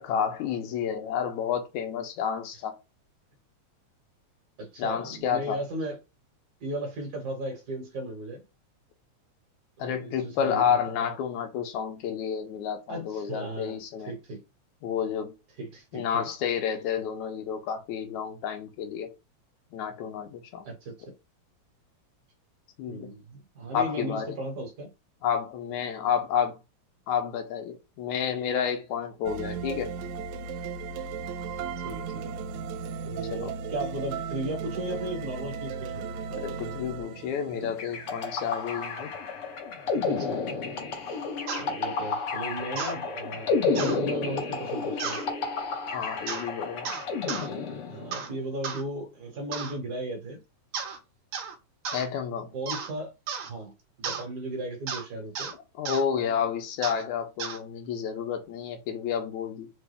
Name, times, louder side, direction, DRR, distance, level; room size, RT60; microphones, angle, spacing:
voice 1, 0.0-2.8 4.8-5.6 9.8-14.1 14.8-15.3 15.9-19.1 19.7-20.7 22.8-23.1 23.7-24.4 25.2-26.6 27.1-29.9 33.3-33.5 36.3-39.1 45.9-46.9 51.9-52.6 55.8-59.7, left 8 dB, 90° left, 2.2 m, -30 dB
voice 2, 4.6-6.0 6.6-8.4 9.8-10.8 12.9-13.8 14.1-14.4 15.6-16.3 20.6-21.1 22.9-24.9 31.8-32.3 33.0-36.0 37.6-37.7 40.2-40.6 41.1-41.2 41.6-45.2 47.9-50.4 52.5-53.1 53.5-53.7 54.0-55.5, right 1 dB, 45° right, 1.4 m, -36 dB
sound 1, 29.2-39.4, right 5 dB, 85° right, 1.9 m, -36 dB
sound 2, 37.8-48.2, left 4 dB, 60° left, 1.8 m, -31 dB
sound 3, 41.5-41.7 42.8-43.0 43.7-44.0 45.0-45.3 46.3-46.5 46.8-47.5 48.1-48.3 48.6-48.8 49.5-49.8 50.7-51.0 51.3-51.5 51.8-52.1 52.7-52.9 53.3-53.5 54.0-54.2 54.9-55.0 55.3-55.5 55.8-56.0 56.8-57.0 57.4-57.6, right 6 dB, 65° right, 1.4 m, -34 dB
5.1 x 2.2 x 3.4 m
omnidirectional pair, 3.3 m